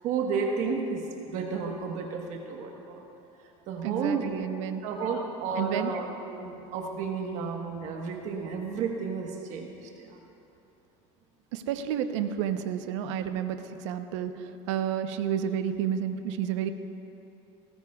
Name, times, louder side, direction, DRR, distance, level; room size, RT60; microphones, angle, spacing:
voice 1, 0.0-3.0 3.7-4.4 4.8-10.2, right 5 dB, 50° right, 2 dB, 1.3 m, -32 dB
voice 2, 3.8-4.8 5.5-5.9 11.5-16.7, right 9 dB, 85° right, 8 dB, 0.8 m, -30 dB
19.0 x 19.0 x 2.4 m, 2.9 s
supercardioid pair, 140°, 15 cm